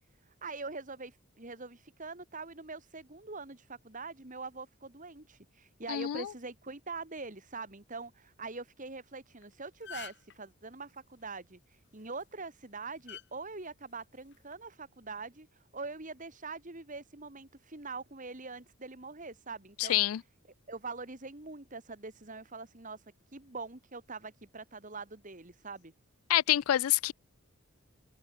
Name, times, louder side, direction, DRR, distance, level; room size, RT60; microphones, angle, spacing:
voice 1, 0.3-20.0 20.7-25.9, right 3 dB, 35° right, 2.0 m, -44 dB
voice 2, 5.9-6.3 19.8-20.2 26.3-27.1, left 13 dB, 80° left, 0.3 m, -27 dB
sound 1, 9.3-9.4 9.7-10.3 12.0-12.2 13.1-13.2 14.3-14.5, left 9 dB, 55° left, 6.0 m, -45 dB
head